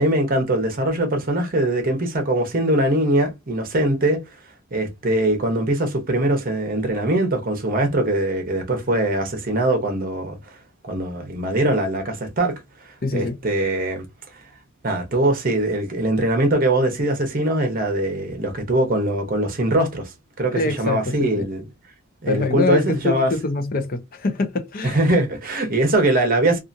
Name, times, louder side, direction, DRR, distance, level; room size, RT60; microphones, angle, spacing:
voice 1, 0.0-4.2 4.7-10.4 10.8-12.6 13.1-14.1 14.8-20.1 20.4-21.6 22.2-23.3 24.8-26.6, right 1 dB, 45° right, 0.9 m, -21 dB
voice 2, 13.0-13.4 20.5-21.5 22.3-25.0, left 3 dB, 45° left, 0.6 m, -24 dB
2.8 x 2.4 x 2.5 m
head